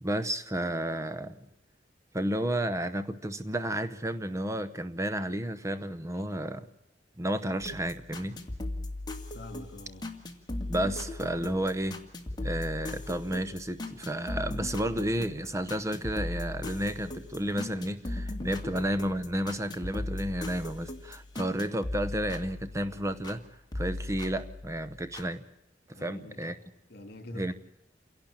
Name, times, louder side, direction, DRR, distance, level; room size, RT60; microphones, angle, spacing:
voice 1, 0.0-1.5 2.1-6.7 7.2-8.4 10.7-12.0 12.4-23.4 23.7-25.4 25.9-26.6 27.3-27.5, right 1 dB, 15° right, 13 dB, 0.8 m, -32 dB
sound 1, 7.6-23.4 23.7-25.3, left 2 dB, 25° left, 2.3 m, -38 dB
voice 2, 9.3-10.1 26.0-26.6 26.9-27.5, left 1 dB, 55° left, 7 dB, 3.4 m, -45 dB
28.5 x 11.5 x 8.6 m, 0.90 s
head